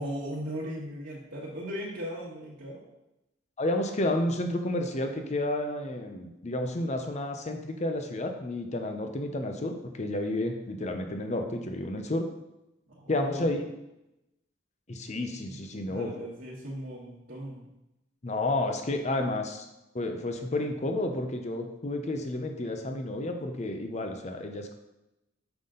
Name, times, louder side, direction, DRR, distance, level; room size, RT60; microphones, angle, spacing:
voice 1, 0.0-2.8 12.9-13.6 15.4-15.6 15.9-17.7, equal, 55° right, -7 dB, 1.4 m, -38 dB
voice 2, 3.6-12.3 13.1-13.6 14.9-16.1 18.2-19.7 19.9-24.7, left 1 dB, 35° left, 5 dB, 0.7 m, -31 dB
5.9 x 5.5 x 3.8 m, 0.92 s
head